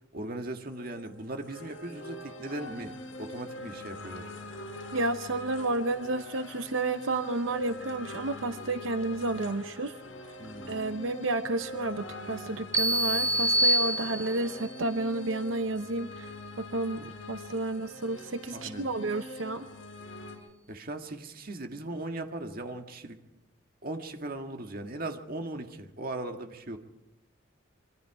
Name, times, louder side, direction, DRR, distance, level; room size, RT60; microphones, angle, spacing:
voice 1, 0.1-4.3 10.4-11.0 18.5-18.9 20.7-23.2 23.8-26.8, right 2 dB, 50° right, 5 dB, 1.8 m, -38 dB
sound 1, 0.6-20.4, left 2 dB, 75° left, 6.3 m, -43 dB
voice 2, 4.9-9.9 10.7-19.7, right 2 dB, 85° right, 10 dB, 0.8 m, -31 dB
sound 2, 12.7-14.6, right 1 dB, 15° right, 1.9 m, -26 dB
26.0 x 24.0 x 4.9 m, 0.90 s
head